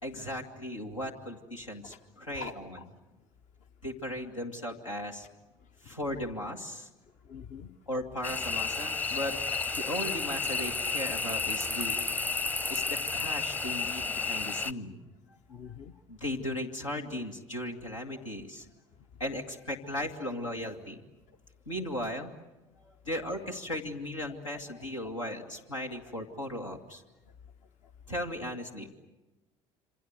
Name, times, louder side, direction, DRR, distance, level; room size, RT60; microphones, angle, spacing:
voice 1, 0.0-2.6 3.8-5.3 5.8-6.9 7.9-9.4 9.8-12.0 12.7-15.0 16.1-18.7 19.2-21.0 21.7-22.3 22.8-27.0 28.1-28.9, left 1 dB, 85° left, 2 dB, 2.2 m, -37 dB
voice 2, 2.4-2.9 5.8-6.2 7.3-7.7 9.2-9.4 15.5-15.9 23.1-23.2 25.2-25.3, left 7 dB, 50° left, 8 dB, 1.0 m, -46 dB
sound 1, 8.2-14.7, left 4 dB, 10° left, 0.8 m, -32 dB
27.5 x 26.0 x 8.0 m, 1.1 s
figure-of-eight pair, 60°, 16 cm